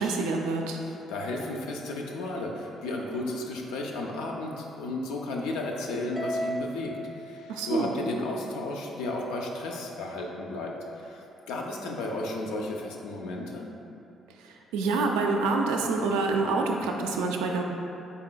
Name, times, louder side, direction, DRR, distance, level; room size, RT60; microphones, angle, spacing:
voice 1, 0.0-0.8 7.5-7.9 14.4-17.6, right 3 dB, 85° right, 1 dB, 0.3 m, -27 dB
voice 2, 0.8-13.7, left 2 dB, 80° left, 0 dB, 0.4 m, -34 dB
Harp, 6.2-8.6, equal, 20° left, 0.5 m, -36 dB
3.9 x 3.8 x 2.2 m, 2.8 s
supercardioid pair, 55°, 0 cm